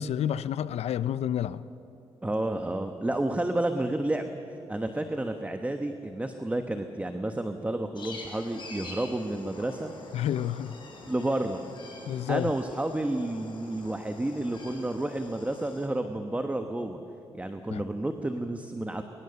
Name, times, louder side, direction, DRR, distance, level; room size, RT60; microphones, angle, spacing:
voice 1, 0.0-1.6 10.1-10.8 12.1-12.5 17.7-17.8, left 10 dB, 80° left, 0.5 m, -29 dB
voice 2, 2.2-4.3 4.7-9.9 11.1-11.6 12.3-17.0 17.3-19.0, right 1 dB, 15° right, 1.2 m, -30 dB
sound 1, 7.9-15.9, left 2 dB, 50° left, 6.3 m, -46 dB
23.5 x 23.0 x 6.9 m
cardioid pair, 90°, 11 cm